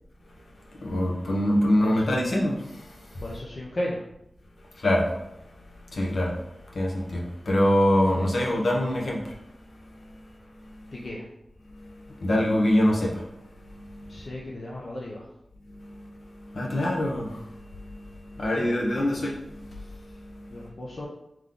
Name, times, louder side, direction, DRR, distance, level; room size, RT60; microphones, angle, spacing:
voice 1, 0.4-3.2 4.7-11.0 11.7-14.3 15.6-20.7, left 1 dB, 75° left, -2 dB, 1.0 m, -27 dB
voice 2, 3.2-4.0 10.9-11.2 14.1-15.3 18.6-18.7 20.5-21.1, left 1 dB, 55° left, -3 dB, 0.6 m, -34 dB
3.7 x 3.1 x 3.7 m, 0.82 s
wide cardioid pair, 80°, 0 cm